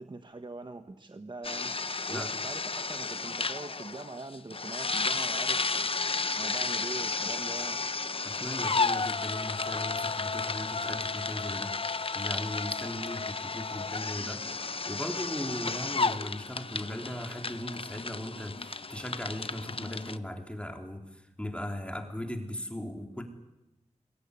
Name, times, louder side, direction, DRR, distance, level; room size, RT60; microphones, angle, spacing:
voice 1, 0.0-1.7 2.1-7.8, right 2 dB, 40° right, 8 dB, 1.3 m, -43 dB
sound 1, 1.4-20.2, left 4 dB, 50° left, 1.0 m, -33 dB
voice 2, 8.2-11.8 12.1-14.5 14.9-23.2, left 1 dB, 10° left, 4 dB, 3.7 m, -38 dB
25.5 x 22.0 x 10.0 m, 0.94 s
wide cardioid pair, 80°, 12 cm